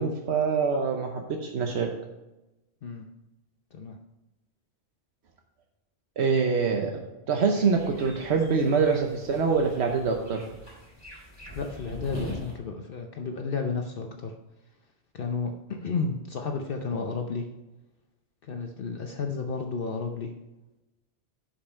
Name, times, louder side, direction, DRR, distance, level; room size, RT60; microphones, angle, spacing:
voice 1, 0.0-1.9 6.2-10.5, right 5 dB, 80° right, 2 dB, 1.2 m, -25 dB
sound 1, 7.5-12.6, left 1 dB, 15° left, 3.3 m, -42 dB
voice 2, 11.5-14.4 15.1-17.5 18.4-20.3, left 4 dB, 60° left, 3 dB, 0.9 m, -32 dB
11.5 x 5.6 x 4.4 m, 1.0 s
omnidirectional pair, 1.1 m